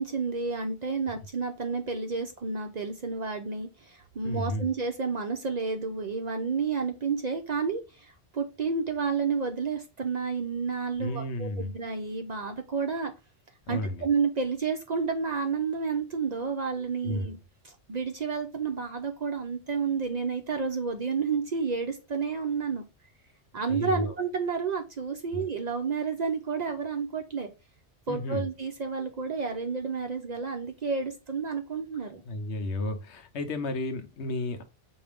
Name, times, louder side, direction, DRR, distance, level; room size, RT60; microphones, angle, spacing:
voice 1, 0.0-13.1 13.7-17.4 17.6-22.8 23.5-27.5 28.1-32.2, right 5 dB, 50° right, 0.6 m, -30 dB
voice 2, 4.2-4.7 11.0-11.7 13.7-14.1 17.0-17.4 23.7-24.1 25.3-25.4 28.1-28.4 32.2-34.6, left 1 dB, 80° left, 1.0 m, -32 dB
5.8 x 2.6 x 3.4 m
omnidirectional pair, 1.1 m